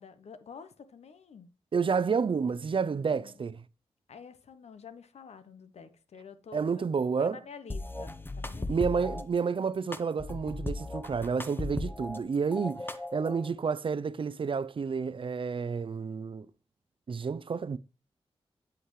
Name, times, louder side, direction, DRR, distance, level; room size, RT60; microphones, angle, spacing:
voice 1, 0.0-1.5 3.1-3.4 4.1-6.8 7.2-8.8, left 6 dB, 75° left, 0.9 m, -49 dB
voice 2, 1.7-3.6 6.5-7.4 8.7-16.5 17.1-17.8, right 5 dB, 50° right, 0.5 m, -30 dB
sound 1, 7.7-9.2 9.9-12.2 12.5-13.5, left 2 dB, 20° left, 1.0 m, -37 dB
8.3 x 7.9 x 3.2 m
cardioid pair, 45°, 11 cm